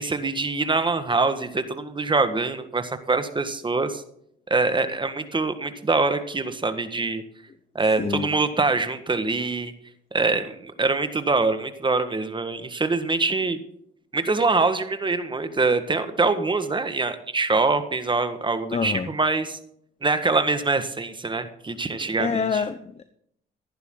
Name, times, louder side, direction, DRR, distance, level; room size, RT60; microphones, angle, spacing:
voice 1, 0.0-4.0 4.5-7.2 7.7-9.7 10.1-13.6 14.1-19.6 20.0-22.4, right 3 dB, 25° right, 9 dB, 1.6 m, -24 dB
voice 2, 8.0-8.3 18.7-19.1 22.2-23.0, left 5 dB, 30° left, 11 dB, 0.9 m, -26 dB
14.5 x 11.0 x 3.9 m, 0.70 s
cardioid pair, 90°, 20 cm